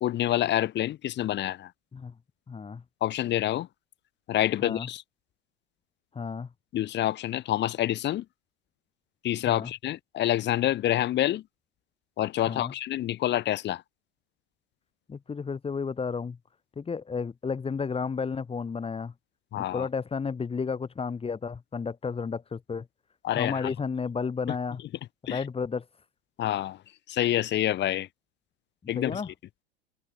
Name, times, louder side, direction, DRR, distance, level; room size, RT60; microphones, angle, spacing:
voice 1, 0.0-1.7 3.0-3.7 4.3-5.0 6.7-8.3 9.2-11.4 12.2-13.8 19.5-19.9 23.2-23.7 25.3-25.4 26.4-26.8 27.1-28.1 28.9-29.2, left 13 dB, 35° left, 1.7 m, -27 dB
voice 2, 2.5-2.8 4.6-4.9 6.1-6.5 9.5-9.7 12.5-12.7 15.1-16.4 16.8-19.1 19.6-22.9 23.4-24.8 25.3-25.8 29.0-29.3, left 5 dB, 20° left, 2.6 m, -32 dB
figure-of-eight pair, 80°, 31 cm